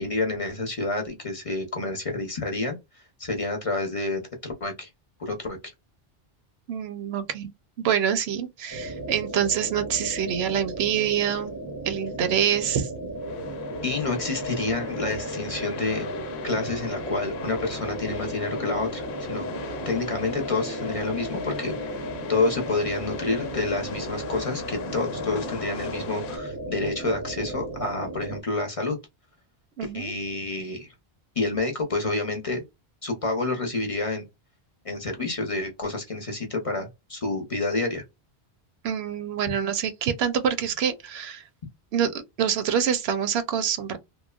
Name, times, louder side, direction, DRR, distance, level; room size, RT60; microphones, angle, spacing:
voice 1, 0.0-2.8 3.2-4.9 5.2-5.6 13.8-16.0 16.4-19.5 19.9-21.9 22.3-29.0 29.8-30.9 31.4-32.6 33.0-34.2 34.8-38.0, left 3 dB, 40° left, 0.7 m, -28 dB
voice 2, 6.7-7.5 7.8-11.5 11.8-12.9 29.8-30.1 38.8-41.4 41.9-44.0, right 8 dB, 80° right, 0.8 m, -26 dB
sound 1, 8.7-28.4, right 1 dB, 30° right, 0.4 m, -35 dB
sound 2, 13.2-26.4, left 5 dB, 85° left, 0.9 m, -37 dB
3.0 x 2.0 x 2.3 m
omnidirectional pair, 1.1 m